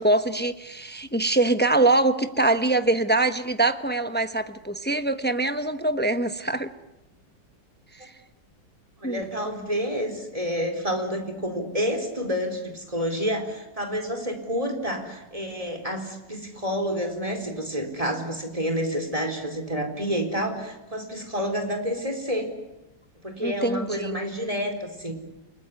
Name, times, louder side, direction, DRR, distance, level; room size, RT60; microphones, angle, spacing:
voice 1, 0.0-6.7 7.9-8.1 9.0-9.3 23.4-24.2, right 2 dB, 10° left, 8 dB, 0.5 m, -23 dB
voice 2, 9.0-22.5 23.2-25.1, equal, 20° right, 4 dB, 4.2 m, -29 dB
29.5 x 20.0 x 9.7 m, 0.96 s
omnidirectional pair, 2.0 m